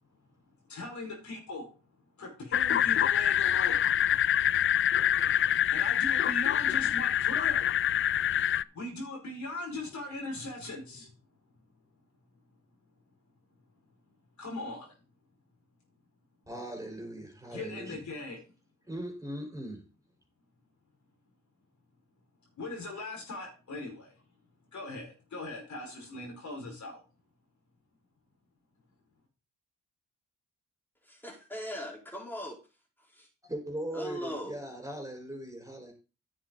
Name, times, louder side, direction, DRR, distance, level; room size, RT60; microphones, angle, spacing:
voice 1, 0.7-1.6 2.2-3.8 5.7-7.7 8.8-11.1 14.4-14.9 17.5-18.4 22.6-24.1 24.7-27.0, left 2 dB, 60° left, 5.3 m, -39 dB
sound 1, 2.5-8.6, left 10 dB, 40° left, 0.4 m, -26 dB
voice 2, 16.5-18.0 18.9-19.8 33.5-35.9, right 1 dB, 10° right, 4.7 m, -39 dB
voice 3, 31.1-32.5 33.9-34.6, equal, 5° left, 4.3 m, -39 dB
10.5 x 7.7 x 4.0 m
supercardioid pair, 55°, 32 cm